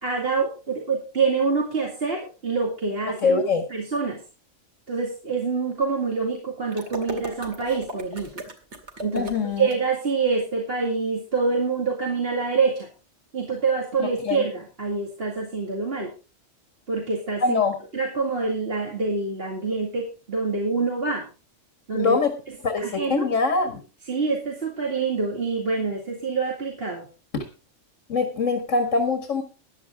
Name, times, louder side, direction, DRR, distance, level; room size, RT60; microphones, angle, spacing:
voice 1, 0.0-3.4 3.7-4.2 4.9-8.4 9.0-12.9 13.3-16.1 16.9-17.6 17.9-21.2 21.9-22.2 22.8-23.3 24.1-27.1, right 4 dB, 50° right, 0 dB, 2.4 m, -26 dB
voice 2, 3.2-3.6 9.1-9.7 14.0-14.4 17.4-17.8 21.9-22.3 22.6-23.8 27.3-27.4 28.1-29.4, left 4 dB, 80° left, 6 dB, 2.1 m, -23 dB
sound 1, 6.7-9.8, right 2 dB, 65° right, 2.6 m, -37 dB
14.5 x 11.0 x 3.6 m, 0.33 s
omnidirectional pair, 1.3 m